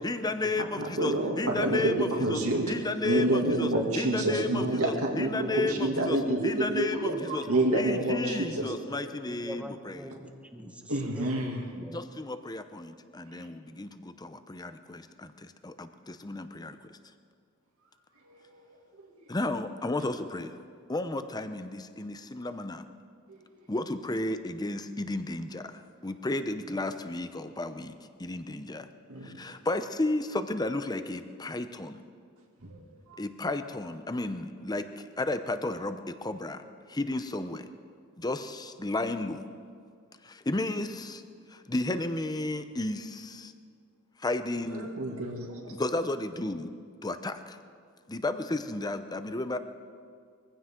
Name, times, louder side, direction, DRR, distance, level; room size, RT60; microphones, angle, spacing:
voice 1, 0.0-2.4 2.7-3.7 4.0-6.2 6.4-7.4 7.7-10.1 11.9-16.9 19.3-20.5 20.9-22.9 23.7-27.9 28.2-28.9 29.2-32.0 33.2-36.6 36.9-37.7 38.2-39.4 40.2-41.2 41.5-43.5 44.2-44.9 45.7-46.7 47.0-47.6 48.1-49.6, left 2 dB, 20° left, 10 dB, 0.7 m, -33 dB
voice 2, 0.6-2.7 3.0-8.7 10.9-11.6 13.3-13.5 18.2-18.6 20.0-20.1 23.3-23.5 29.1-29.3 32.6-32.8 33.1-33.2 44.7-45.7, right 1 dB, 85° right, 0 dB, 2.5 m, -29 dB
voice 3, 1.4-1.9 3.1-3.2 3.7-3.8 4.3-4.4 5.5-6.3 7.1-7.3 7.7-7.8 9.3-12.1, equal, 5° right, 5 dB, 1.1 m, -42 dB
22.5 x 15.5 x 3.8 m, 2.2 s
head